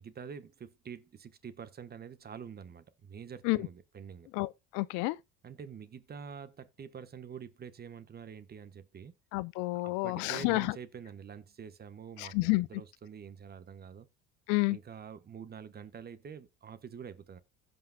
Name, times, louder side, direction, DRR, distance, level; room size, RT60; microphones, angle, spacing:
voice 1, 0.0-4.3 5.4-9.1 9.7-14.1 14.7-17.4, right 7 dB, 30° right, 1.2 m, -47 dB
voice 2, 4.3-5.2 9.3-10.8 12.2-12.7 14.5-14.8, left 23 dB, 70° left, 0.6 m, -30 dB
15.5 x 5.5 x 2.3 m
supercardioid pair, 90°, 30 cm